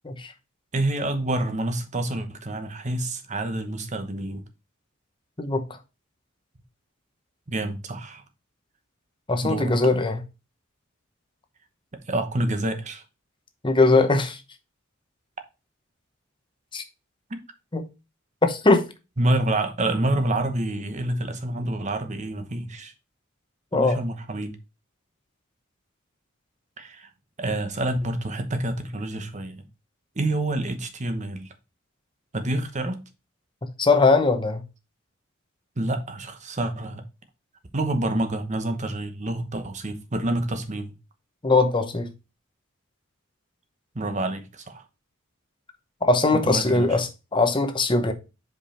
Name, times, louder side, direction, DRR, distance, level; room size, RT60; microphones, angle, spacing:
voice 1, 0.7-4.4 7.5-8.2 9.4-9.7 12.1-13.0 17.3-17.4 19.2-22.9 23.7-24.6 26.8-27.1 27.4-29.6 30.2-31.5 32.3-33.0 35.8-37.0 37.7-40.9 43.9-44.8 46.3-47.0, right 1 dB, 35° right, 1.0 m, -27 dB
voice 2, 9.3-10.2 13.6-14.4 16.7-16.8 17.7-17.9 18.4-18.9 23.7-24.0 33.8-34.6 41.4-42.1 46.0-48.1, left 3 dB, 25° left, 0.8 m, -20 dB
5.2 x 5.1 x 4.2 m
head